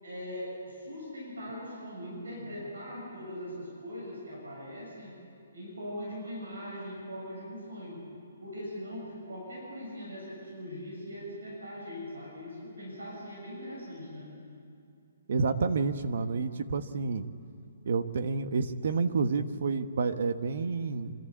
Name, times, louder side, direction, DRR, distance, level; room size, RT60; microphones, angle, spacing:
voice 1, 0.0-5.2 5.5-8.1 8.4-14.3, equal, 90° right, -3 dB, 7.2 m, -41 dB
voice 2, 15.3-17.3 17.8-21.1, right 4 dB, 60° right, 10 dB, 1.1 m, -29 dB
26.0 x 12.5 x 8.6 m, 2.4 s
hypercardioid pair, 150°, 0 cm